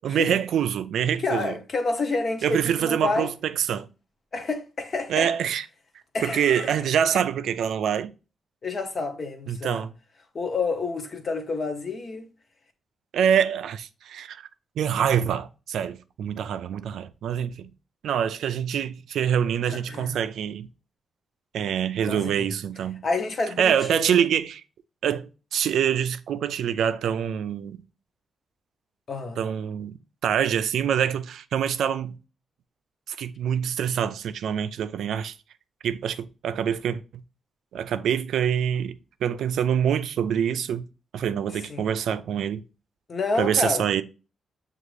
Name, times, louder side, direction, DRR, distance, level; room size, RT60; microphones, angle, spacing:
voice 1, 0.0-1.5 2.4-3.9 5.1-5.6 6.2-8.1 9.5-9.9 13.1-14.5 14.8-17.7 18.0-20.7 21.5-23.0 23.6-24.6 25.0-27.8 29.4-30.0 30.2-32.1 33.1-35.3 35.8-37.0 37.7-40.9 41.1-42.6 43.4-44.0, right 8 dB, 80° right, 0.3 m, -25 dB
voice 2, 1.2-3.3 4.3-5.3 6.1-6.8 8.6-9.8 10.3-12.2 19.7-20.2 22.0-22.5 23.0-24.3 29.1-29.4 41.7-41.9 43.1-43.8, left 3 dB, 35° left, 0.7 m, -29 dB
6.9 x 2.4 x 3.1 m
wide cardioid pair, 170°, 0 cm